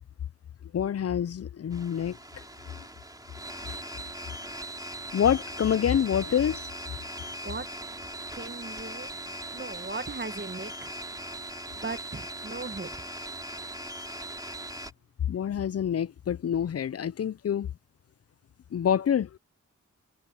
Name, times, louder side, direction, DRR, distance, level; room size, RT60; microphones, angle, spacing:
voice 1, 0.7-2.2 5.1-6.7 15.3-17.7 18.7-19.3, left 9 dB, 55° left, 0.4 m, -26 dB
sound 1, 1.7-14.9, right 1 dB, 10° right, 3.7 m, -40 dB
voice 2, 8.3-10.9 11.7-13.1, right 3 dB, 35° right, 1.5 m, -38 dB
wide cardioid pair, 85°, 30 cm